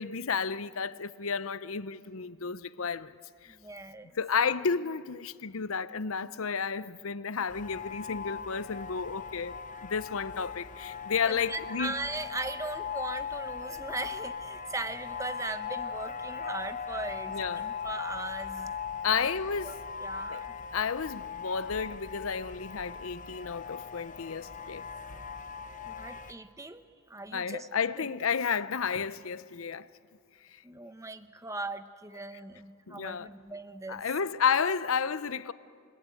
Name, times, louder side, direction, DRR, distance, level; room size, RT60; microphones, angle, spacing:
voice 1, 0.0-3.1 3.4-3.5 4.2-9.5 9.8-11.9 17.3-17.7 19.0-19.8 20.3-24.8 27.3-29.9 30.5-30.6 32.9-33.3 33.9-35.5, left 6 dB, 70° left, 0.7 m, -32 dB
voice 2, 3.5-4.2 11.2-18.7 19.1-19.3 19.6-19.7 20.0-20.5 25.9-26.8 27.1-27.7 28.0-28.1 30.6-34.0, right 2 dB, 15° right, 0.9 m, -39 dB
sound 1, 7.5-26.3, left 6 dB, 35° left, 0.8 m, -39 dB
28.0 x 19.0 x 9.2 m
head